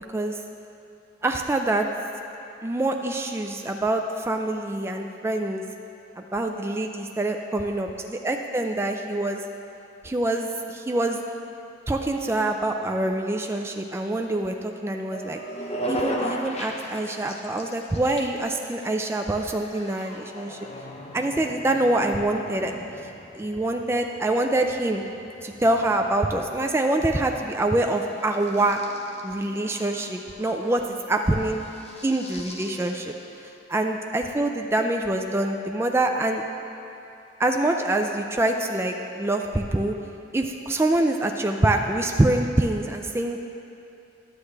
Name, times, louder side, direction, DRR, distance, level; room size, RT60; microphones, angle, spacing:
voice 1, 1.2-1.9 2.6-5.6 6.2-9.4 10.0-11.2 11.9-15.4 15.9-20.6 21.1-22.7 23.3-25.0 25.4-28.8 29.2-31.6 32.0-33.1 33.7-36.4 37.4-40.0 40.3-43.5, right 2 dB, 15° right, 3 dB, 0.3 m, -25 dB
sound 1, 15.1-33.6, equal, 35° left, 0.7 m, -38 dB
11.5 x 8.4 x 3.3 m, 2.8 s
head